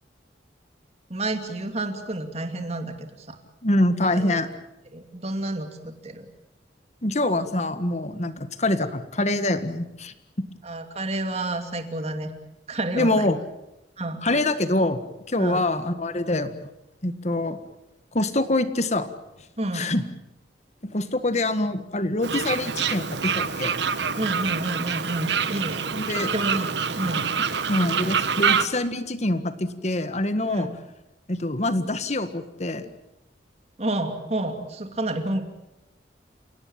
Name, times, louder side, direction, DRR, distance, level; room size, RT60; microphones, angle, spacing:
voice 1, 1.1-3.4 4.0-4.4 4.9-6.3 10.6-12.3 12.7-13.3 14.0-14.2 15.4-15.6 19.6-19.9 24.2-25.9 26.1-27.3 30.4-30.7 33.8-35.4, right 2 dB, 35° right, 7 dB, 2.7 m, -30 dB
voice 2, 3.6-4.5 7.0-10.1 12.9-13.4 14.2-15.0 15.3-16.7 17.0-17.6 18.1-19.1 19.7-20.0 20.8-23.7 25.9-26.3 27.7-30.7 31.3-32.9, left 1 dB, 40° left, 11 dB, 1.7 m, -25 dB
Fowl, 22.2-28.7, right 6 dB, 75° right, 1.3 m, -26 dB
29.5 x 17.5 x 8.8 m, 0.92 s
head